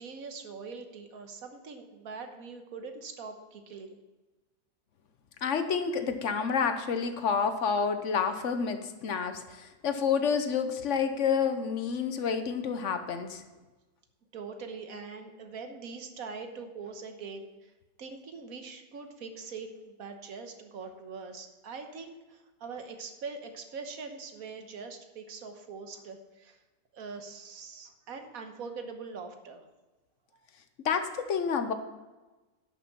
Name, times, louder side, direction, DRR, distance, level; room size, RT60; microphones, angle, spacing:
voice 1, 0.0-4.0 14.3-17.7 18.0-26.6 26.9-29.6, right 4 dB, 90° right, 6 dB, 1.6 m, -43 dB
voice 2, 5.4-13.4 30.8-31.7, left 6 dB, 65° left, 8 dB, 1.2 m, -29 dB
11.0 x 6.7 x 5.9 m, 1.2 s
omnidirectional pair, 1.4 m